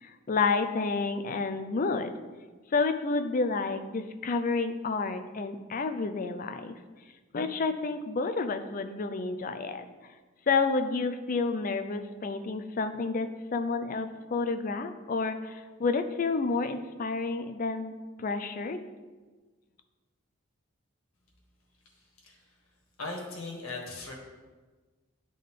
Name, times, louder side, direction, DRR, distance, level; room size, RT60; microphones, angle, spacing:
voice 1, 0.0-2.2 2.7-6.7 7.3-9.9 10.5-18.8, left 4 dB, 40° left, 8 dB, 0.4 m, -30 dB
voice 2, 23.0-24.1, left 3 dB, 85° left, -1 dB, 1.6 m, -38 dB
10.5 x 3.8 x 3.6 m, 1.3 s
head